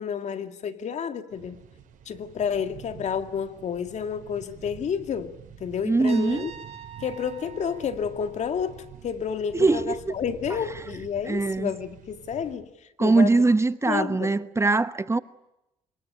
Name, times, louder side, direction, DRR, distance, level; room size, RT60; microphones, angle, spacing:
voice 1, 0.0-1.6 2.1-6.5 7.0-12.7 13.0-13.3 13.8-14.4, left 7 dB, 55° left, 2.2 m, -30 dB
sound 1, 1.3-12.5, right 8 dB, 70° right, 6.4 m, -47 dB
voice 2, 5.8-6.5 9.5-10.1 11.3-11.7 13.0-15.2, right 3 dB, 20° right, 1.0 m, -22 dB
Trumpet, 6.0-9.0, right 8 dB, 45° right, 2.6 m, -45 dB
26.0 x 22.0 x 10.0 m
cardioid pair, 80°, 14 cm